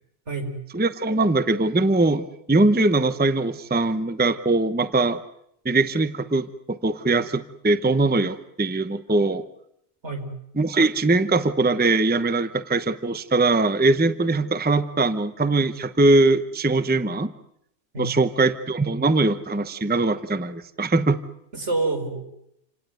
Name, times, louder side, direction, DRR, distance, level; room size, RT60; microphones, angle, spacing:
voice 1, 0.7-5.2 5.6-9.4 10.6-17.3 18.0-21.2, right 2 dB, 10° right, 12 dB, 0.8 m, -21 dB
voice 2, 21.5-22.2, right 3 dB, 80° right, 6 dB, 4.9 m, -27 dB
28.0 x 18.0 x 9.4 m, 0.76 s
omnidirectional pair, 1.2 m